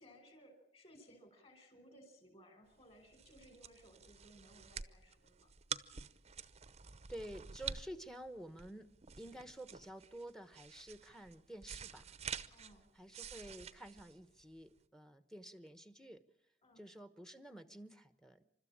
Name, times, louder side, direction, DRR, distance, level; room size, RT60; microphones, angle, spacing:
voice 1, 0.0-5.5 12.5-12.8 16.6-16.8, equal, 35° left, 7 dB, 5.1 m, -61 dB
sound 1, 2.8-14.8, right 7 dB, 35° right, 0.8 m, -48 dB
voice 2, 7.1-8.9 9.2-12.2 12.9-16.2 16.8-18.5, right 1 dB, 5° left, 12 dB, 1.0 m, -51 dB
29.0 x 13.0 x 8.7 m, 0.75 s
head